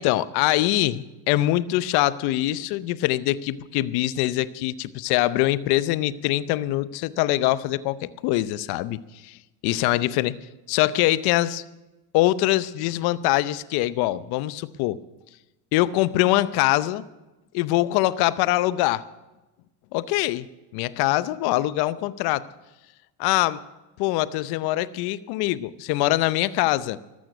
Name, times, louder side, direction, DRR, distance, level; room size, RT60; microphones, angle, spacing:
voice 1, 0.0-9.4 9.6-10.4 10.7-11.6 12.1-15.0 15.7-17.0 17.5-19.0 19.9-20.5 20.7-22.5 23.2-23.6 24.0-27.0, left 16 dB, 50° left, 17 dB, 0.7 m, -23 dB
13.5 x 13.0 x 6.0 m, 1.1 s
supercardioid pair, 120°, 48 cm